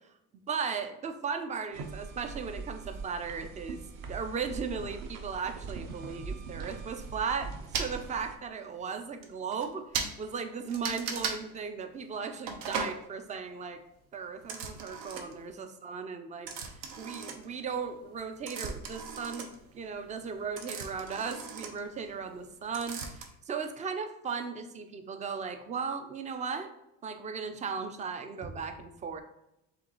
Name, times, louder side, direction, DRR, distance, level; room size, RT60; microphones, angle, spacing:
voice 1, 0.5-3.8 4.1-7.5 7.8-9.9 10.2-13.8 14.1-26.7 27.0-29.2, right 5 dB, 20° right, 8 dB, 0.3 m, -36 dB
sound 1, 1.7-8.4, right 4 dB, 45° right, 0.7 m, -42 dB
sound 2, 7.7-7.9 8.8-8.9 9.2-9.3 9.5-9.7 9.9-10.1 10.7-11.4 12.5-13.0 14.4-15.5 16.5-17.8 18.2-22.5 22.7-23.3, right 5 dB, 75° right, 0.8 m, -37 dB
5.1 x 3.1 x 2.9 m, 0.86 s
supercardioid pair, 100°, 46 cm